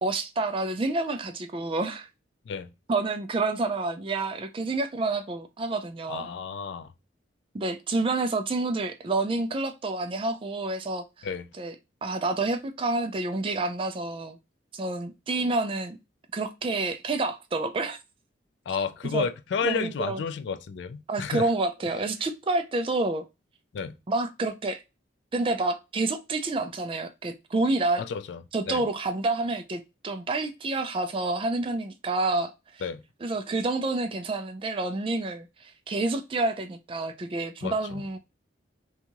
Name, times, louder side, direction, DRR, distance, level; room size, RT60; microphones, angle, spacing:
voice 1, 0.0-2.1 2.9-6.3 7.5-11.3 11.6-11.7 12.0-14.4 14.7-16.0 16.3-18.0 19.1-19.3 19.6-20.2 21.1-23.2 24.1-24.8 25.3-28.0 28.5-32.8 33.2-38.2, right 2 dB, 25° right, 0.3 m, -28 dB
voice 2, 6.1-6.9 11.2-11.5 18.7-21.5 23.7-24.0 28.0-28.4 28.7-28.9 32.8-33.0 37.6-38.0, left 6 dB, 65° left, 0.3 m, -31 dB
2.7 x 2.3 x 2.8 m
head